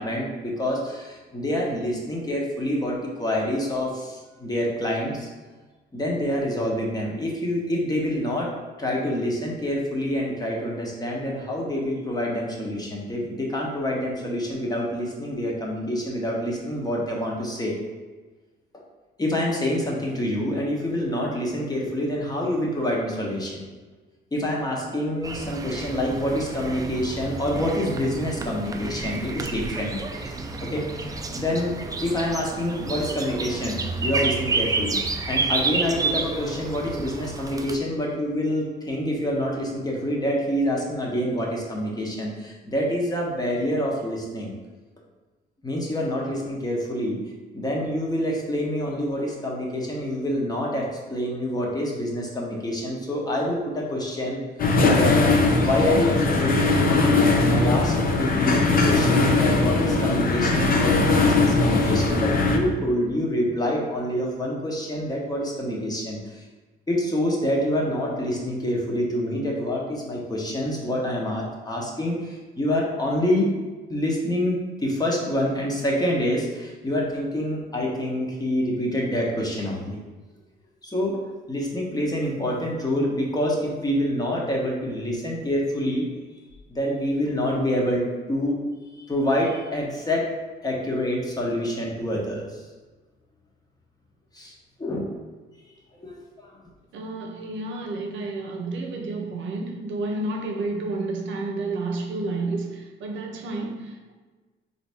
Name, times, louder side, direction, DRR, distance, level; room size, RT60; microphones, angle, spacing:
voice 1, 0.0-5.3 5.9-8.5 8.8-17.8 18.7-18.8 19.2-23.6 24.3-35.0 35.3-44.5 45.6-47.2 47.5-54.4 54.9-55.3 55.6-66.4 66.9-73.5 73.9-80.0 80.8-86.1 86.7-88.7 89.0-90.3 90.6-92.5 94.3-94.5 94.8-95.1 95.9-96.5, left 1 dB, 20° left, -2 dB, 1.0 m, -27 dB
sound 1, 25.2-37.8, right 3 dB, 20° right, 0.3 m, -30 dB
sound 2, 54.6-62.6, left 3 dB, 45° left, 0.6 m, -20 dB
voice 2, 96.9-104.1, right 2 dB, 75° right, 2 dB, 0.7 m, -30 dB
3.9 x 2.7 x 3.4 m, 1.3 s
cardioid pair, 90°, 20 cm